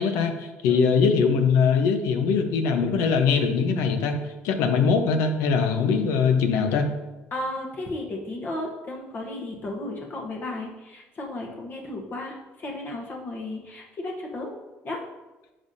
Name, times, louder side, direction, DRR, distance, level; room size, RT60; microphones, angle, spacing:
voice 1, 0.0-4.2 4.4-6.9, left 5 dB, 85° left, 6 dB, 0.9 m, -22 dB
voice 2, 7.3-14.5 14.8-15.0, left 2 dB, 45° left, 0 dB, 1.1 m, -34 dB
10.0 x 5.5 x 2.7 m, 1.1 s
cardioid pair, 100°, 5 cm